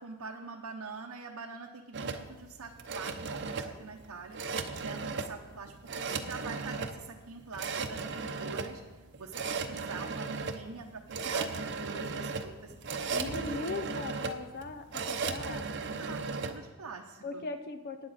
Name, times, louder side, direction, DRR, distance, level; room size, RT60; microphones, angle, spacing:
voice 1, 0.0-4.4 4.8-8.8 9.2-12.7 13.2-13.7 15.8-17.5, right 4 dB, 90° right, 1 dB, 0.9 m, -44 dB
sound 1, 1.9-16.5, right 4 dB, 55° right, 0.7 m, -36 dB
voice 2, 13.1-15.7 17.2-18.1, left 3 dB, 45° left, 9 dB, 0.5 m, -39 dB
14.5 x 9.7 x 4.2 m, 1.3 s
head